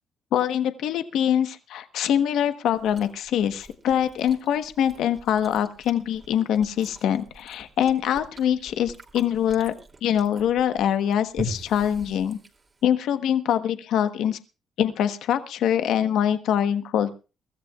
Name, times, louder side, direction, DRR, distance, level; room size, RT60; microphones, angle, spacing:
voice 1, 0.3-9.7 10.0-12.4 12.8-14.4 14.8-17.1, left 9 dB, 80° left, 9 dB, 1.2 m, -24 dB
Chewing mastication, 2.7-12.9, right 2 dB, 35° right, 2.7 m, -43 dB
23.5 x 14.0 x 2.4 m, 0.32 s
cardioid pair, 90°, 0 cm